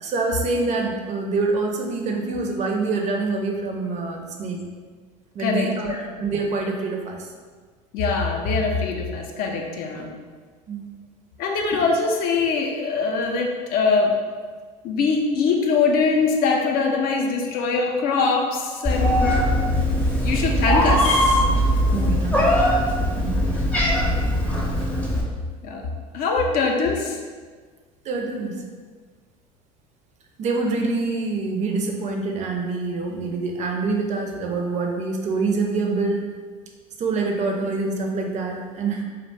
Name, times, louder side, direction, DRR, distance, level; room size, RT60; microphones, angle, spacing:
voice 1, 0.0-4.6 5.3-7.3 10.7-10.9 21.9-22.5 23.2-23.5 24.8-24.9 28.0-28.6 30.4-36.2 37.0-39.0, right 3 dB, 40° right, 2 dB, 0.5 m, -26 dB
voice 2, 5.4-6.1 7.9-10.1 11.4-14.1 14.8-19.4 20.1-21.4 23.5-23.7 25.6-25.9 26.1-27.2, left 4 dB, 55° left, 1 dB, 0.5 m, -23 dB
Meow, 18.8-25.2, equal, 5° left, 0.5 m, -20 dB
2.4 x 2.0 x 3.2 m, 1.5 s
hypercardioid pair, 80°, 19 cm